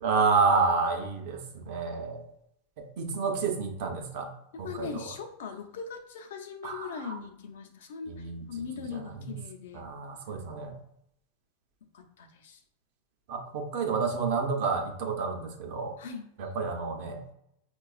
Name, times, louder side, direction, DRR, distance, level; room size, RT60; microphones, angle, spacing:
voice 1, 0.0-2.2 3.0-4.3 4.6-5.0 6.6-7.2 8.1-8.4 8.9-9.3 9.7-10.8 13.3-16.0 16.4-17.2, right 4 dB, 55° right, 4 dB, 0.6 m, -29 dB
voice 2, 4.5-9.8 11.9-12.6 16.0-16.3, left 6 dB, 80° left, 4 dB, 0.6 m, -40 dB
4.7 x 2.3 x 2.4 m, 0.77 s
supercardioid pair, 145°, 0 cm